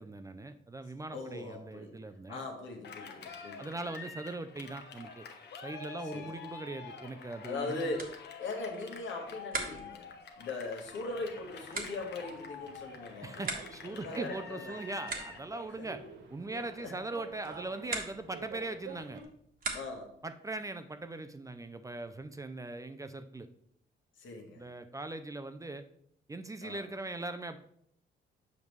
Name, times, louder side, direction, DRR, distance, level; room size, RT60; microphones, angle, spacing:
voice 1, 0.0-2.4 3.6-5.3 5.6-7.9 13.2-16.0 16.3-19.2 20.2-23.5 24.6-25.8 26.3-27.6, right 2 dB, 15° right, 9 dB, 0.4 m, -40 dB
voice 2, 1.1-2.0 2.3-3.7 6.1-6.3 7.4-13.4 13.8-14.7 15.8-15.9 16.5-16.9 19.7-20.2 24.2-24.7 26.6-26.9, left 3 dB, 75° left, 2 dB, 1.4 m, -40 dB
Cheering, 2.8-15.5, left 5 dB, 60° left, 1.0 m, -47 dB
sound 1, 7.9-20.2, right 4 dB, 45° right, 1.3 m, -44 dB
sound 2, 10.8-19.2, right 5 dB, 65° right, 1.2 m, -50 dB
7.2 x 5.3 x 3.2 m, 0.68 s
cardioid pair, 90°, 20 cm